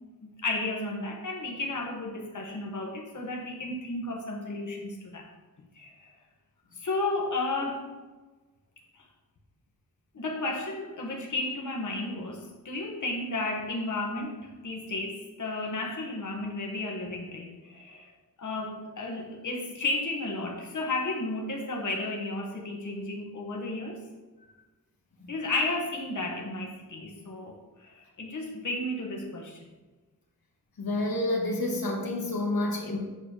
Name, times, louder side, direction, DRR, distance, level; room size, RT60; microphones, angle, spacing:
voice 1, 0.4-5.2 5.7-5.9 6.8-7.9 10.1-18.1 18.4-24.0 25.3-29.6, left 2 dB, 55° left, -1 dB, 1.5 m, -33 dB
voice 2, 30.8-33.0, left 1 dB, 85° left, -1 dB, 1.5 m, -29 dB
8.8 x 4.0 x 6.6 m, 1.2 s
wide cardioid pair, 125°, 35 cm